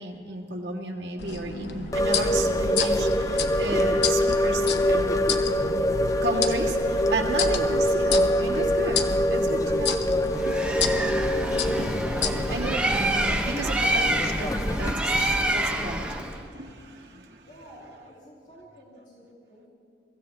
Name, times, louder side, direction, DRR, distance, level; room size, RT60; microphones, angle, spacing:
voice 1, 0.0-5.3 6.2-10.0 10.4-10.6 11.7-11.9 12.5-17.5, right 2 dB, 75° right, -1 dB, 1.8 m, -33 dB
sound 1, 1.2-12.8, left 6 dB, 75° left, 0.9 m, -32 dB
sound 2, 1.9-14.9, equal, 20° left, 0.6 m, -25 dB
Bird, 10.4-16.4, right 1 dB, 5° right, 0.8 m, -27 dB
voice 2, 17.4-19.7, equal, 45° left, -6 dB, 3.0 m, -50 dB
23.5 x 15.0 x 3.4 m, 2.8 s
head